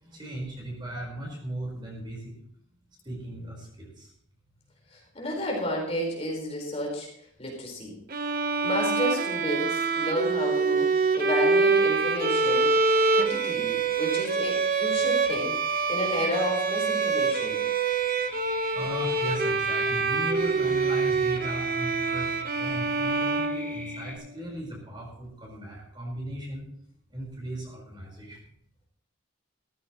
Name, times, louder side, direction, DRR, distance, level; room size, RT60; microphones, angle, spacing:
voice 1, 0.0-2.2 3.0-4.1 18.7-26.6 27.1-28.4, right 1 dB, 20° right, -2 dB, 4.8 m, -37 dB
voice 2, 4.9-7.1 7.4-8.0 8.6-12.7 13.1-17.6, equal, 30° left, -1 dB, 4.6 m, -31 dB
Bowed string instrument, 8.1-24.2, right 4 dB, 45° right, 1.1 m, -25 dB
sound 1, 11.7-24.2, left 1 dB, 10° left, 2.8 m, -42 dB
16.5 x 14.5 x 3.1 m, 0.69 s
head